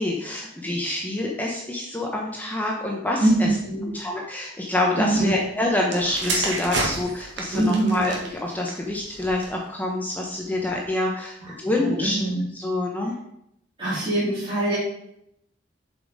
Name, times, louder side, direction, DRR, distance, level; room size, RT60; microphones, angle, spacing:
voice 1, 0.0-3.6 3.9-12.2 12.5-13.1, left 1 dB, 10° left, -1 dB, 0.9 m, -26 dB
voice 2, 3.2-3.9 4.9-5.3 7.5-8.1 11.4-12.4 13.8-14.8, right 1 dB, 25° right, -9 dB, 3.1 m, -23 dB
sound 1, 5.8-9.7 10.5-10.7, right 2 dB, 65° right, 1.9 m, -31 dB
7.7 x 5.4 x 5.0 m, 0.76 s
head